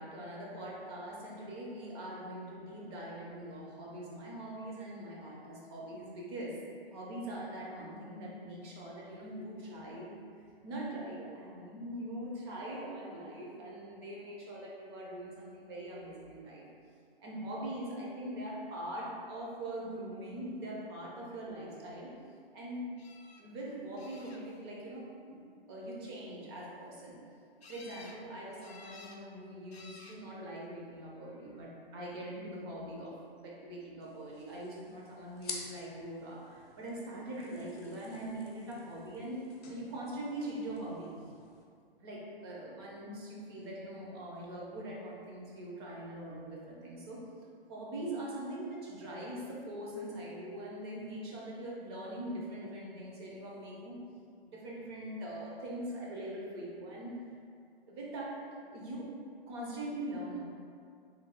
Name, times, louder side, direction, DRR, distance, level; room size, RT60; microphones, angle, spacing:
voice 1, 0.0-6.5 6.9-10.2 10.6-16.6 17.2-22.1 22.5-22.9 23.4-25.4 25.7-27.2 27.7-41.1 42.0-47.2 47.7-54.0 54.4-57.2 57.9-59.1 59.5-60.4, right 1 dB, 25° right, -4 dB, 0.6 m, -42 dB
sound 1, 23.0-23.4 24.0-24.7 27.6-28.2 28.6-29.2 29.7-30.2 31.1-31.6 37.8-37.9 38.3-38.4, left 3 dB, 90° left, 0.5 m, -54 dB
sound 2, 34.0-41.6, left 4 dB, 40° left, 0.6 m, -50 dB
3.2 x 2.6 x 3.8 m, 2.3 s
figure-of-eight pair, 120°, 31 cm